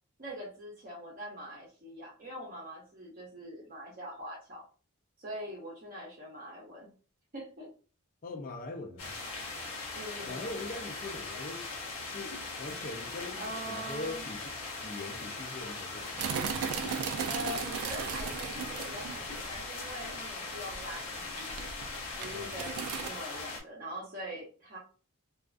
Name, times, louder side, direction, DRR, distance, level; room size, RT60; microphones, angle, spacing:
voice 1, 0.2-4.7 5.2-6.9 7.3-7.7 9.9-10.6 13.3-14.2 17.2-21.7 22.2-24.8, equal, 40° right, 0.7 m, -43 dB
voice 2, 8.2-9.2 10.2-11.7 12.1-14.5 14.8-16.5 22.3-22.6, left 2 dB, 40° left, 0.4 m, -42 dB
sound 1, 9.0-23.6, left 3 dB, 80° left, 0.8 m, -40 dB
sound 2, 16.2-19.6 20.0-20.2 20.7-21.2 21.5-23.1, right 6 dB, 80° right, 0.3 m, -36 dB
2.3 x 2.3 x 2.4 m
head